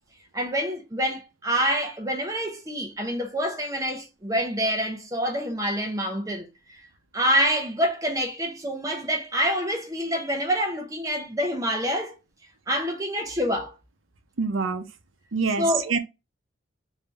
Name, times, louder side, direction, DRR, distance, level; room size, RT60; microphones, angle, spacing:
voice 1, 0.3-6.8 7.1-12.1 12.7-13.7 15.6-15.9, equal, 15° right, 0.7 m, -27 dB
voice 2, 14.4-14.8 15.3-16.0, right 4 dB, 85° right, 0.7 m, -25 dB
3.3 x 2.7 x 3.3 m
head